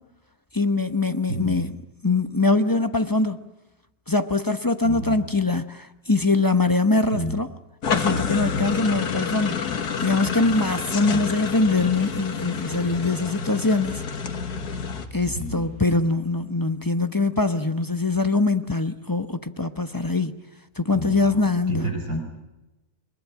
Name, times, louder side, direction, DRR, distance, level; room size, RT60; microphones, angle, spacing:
voice 1, 0.5-1.7 2.0-3.4 4.1-7.5 7.9-14.0 15.1-20.4 20.8-21.9, left 3 dB, 15° left, 0.8 m, -23 dB
voice 2, 1.3-1.6 4.8-5.2 7.1-7.4 11.1-11.3 15.2-15.6 20.9-22.2, right 1 dB, 85° right, 5.3 m, -30 dB
sound 1, 7.8-15.1, left 6 dB, 85° left, 2.1 m, -28 dB
sound 2, 13.8-16.7, left 2 dB, 45° left, 5.9 m, -44 dB
23.5 x 21.5 x 9.0 m
omnidirectional pair, 1.6 m